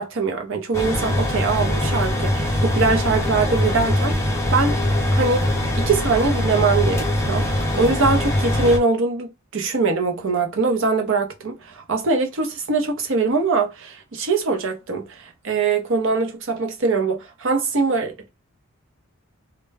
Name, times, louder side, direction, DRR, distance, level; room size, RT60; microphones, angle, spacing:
voice 1, 0.0-4.8 5.1-18.1, right 4 dB, 60° right, 0.7 m, -22 dB
sound 1, 0.7-8.8, left 1 dB, 10° left, 0.5 m, -22 dB
2.2 x 2.1 x 3.3 m
head